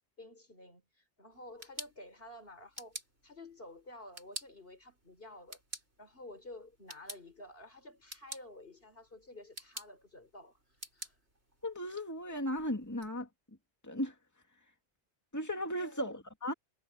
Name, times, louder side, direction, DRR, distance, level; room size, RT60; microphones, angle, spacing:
voice 1, 0.2-5.6 6.0-10.6 10.9-11.1 15.8-16.1, left 1 dB, 60° left, 4.7 m, -51 dB
sound 1, 1.3-13.1, right 1 dB, 85° right, 8.2 m, -51 dB
voice 2, 11.6-13.3 13.8-14.1 15.3-16.5, equal, 15° left, 2.4 m, -36 dB
omnidirectional pair, 1.1 m